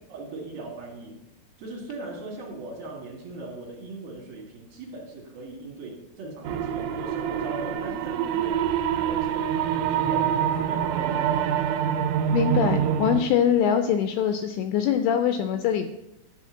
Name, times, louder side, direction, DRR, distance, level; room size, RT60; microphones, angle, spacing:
voice 1, 0.1-1.2 1.6-8.7 8.9-11.4, right 2 dB, 60° right, -2 dB, 3.2 m, -39 dB
sound 1, 6.4-13.2, right 9 dB, 80° right, 3.2 m, -25 dB
voice 2, 12.3-15.9, left 8 dB, 85° left, 8 dB, 2.5 m, -23 dB
11.5 x 4.3 x 7.1 m, 0.89 s
omnidirectional pair, 5.5 m